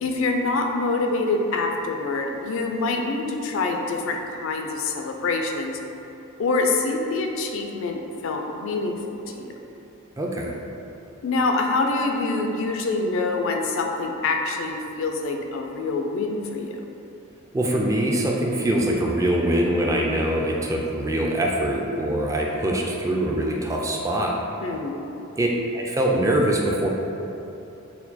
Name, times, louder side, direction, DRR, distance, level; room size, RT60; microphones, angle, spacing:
voice 1, 0.0-5.8 6.4-9.5 11.2-16.8 24.6-25.0, left 3 dB, 65° left, 3 dB, 0.4 m, -25 dB
voice 2, 10.2-10.6 17.5-24.4 25.4-25.5 25.7-26.9, right 1 dB, 15° right, -1 dB, 0.3 m, -23 dB
4.3 x 2.2 x 4.0 m, 3.0 s
head